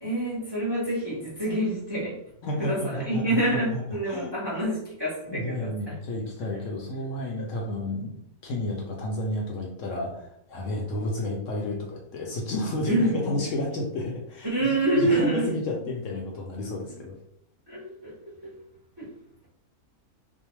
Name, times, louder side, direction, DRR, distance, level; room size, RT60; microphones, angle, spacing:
voice 1, 0.0-2.1 2.6-5.7 6.5-6.6 7.0-7.1 12.9-13.1 14.4-15.4 16.9-17.0 17.7-18.5 19.0-19.1, right 1 dB, 25° right, -7 dB, 0.6 m, -27 dB
voice 2, 2.4-3.8 4.1-4.3 5.3-8.1 8.4-14.5 14.9-17.2, left 1 dB, 70° left, -1 dB, 0.8 m, -31 dB
2.6 x 2.1 x 2.9 m, 0.76 s
omnidirectional pair, 1.5 m